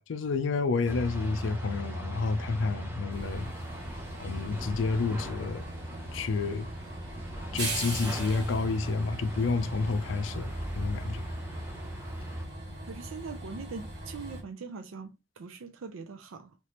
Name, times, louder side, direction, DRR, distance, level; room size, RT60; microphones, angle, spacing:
voice 1, 0.0-3.5 4.2-5.6 6.1-6.7 7.5-11.2, left 4 dB, 70° left, 0.4 m, -30 dB
sound 1, 0.9-12.5, right 1 dB, 10° right, 0.8 m, -39 dB
Train, 3.1-14.4, right 1 dB, 55° right, 1.7 m, -40 dB
voice 2, 12.9-16.6, right 4 dB, 90° right, 0.5 m, -42 dB
3.2 x 2.9 x 2.8 m
head